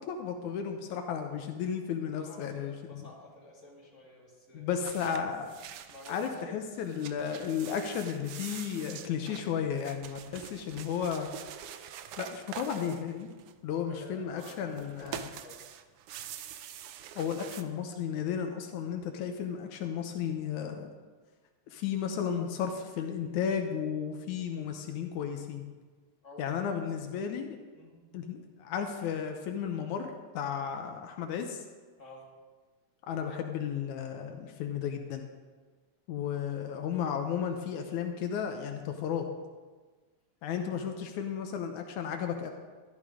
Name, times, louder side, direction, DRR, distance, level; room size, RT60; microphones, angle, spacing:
voice 1, 0.0-3.1 4.5-5.6 6.1-11.3 12.2-13.3 13.6-15.3 17.2-20.9 21.7-25.6 26.4-27.6 28.1-31.6 33.1-35.3 36.1-39.3 40.4-42.5, left 7 dB, 85° left, 4 dB, 2.3 m, -34 dB
voice 2, 2.1-4.7 5.9-6.7 13.9-15.7 26.2-26.7 27.7-28.1 32.0-32.3, left 1 dB, 25° left, -5 dB, 3.3 m, -51 dB
sound 1, 4.8-6.4 6.8-13.8 14.3-17.6, right 10 dB, 80° right, 1.3 m, -45 dB
13.0 x 11.5 x 4.9 m, 1.4 s
omnidirectional pair, 3.3 m